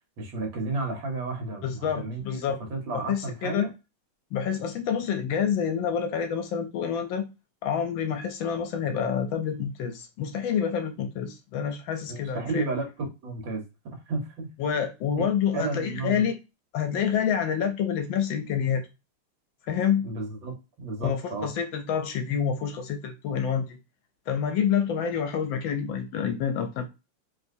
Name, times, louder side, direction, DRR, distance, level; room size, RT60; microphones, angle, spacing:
voice 1, 0.2-3.7 12.1-14.5 15.5-16.3 20.0-21.5, right 3 dB, 65° right, 2.1 m, -33 dB
voice 2, 1.6-2.6 3.1-3.7 4.3-7.3 7.6-12.7 14.6-16.4 16.7-18.9 19.7-20.1 21.0-23.8 24.3-26.9, left 7 dB, 70° left, 1.3 m, -28 dB
4.8 x 3.4 x 2.6 m
omnidirectional pair, 2.4 m